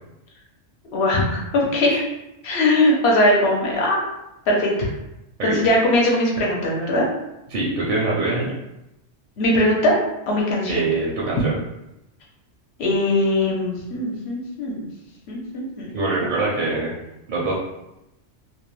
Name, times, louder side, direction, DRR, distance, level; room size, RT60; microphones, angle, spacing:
voice 1, 0.9-2.0 2.4-4.0 4.5-4.9 5.4-7.1 9.4-10.0 10.3-10.8 12.8-14.9 15.3-15.9, left 1 dB, 65° left, -2 dB, 0.9 m, -20 dB
voice 2, 7.5-8.5 10.6-11.5 15.9-16.9 17.3-17.5, right 3 dB, 55° right, -4 dB, 0.6 m, -23 dB
2.4 x 2.1 x 3.0 m, 0.91 s
omnidirectional pair, 1.2 m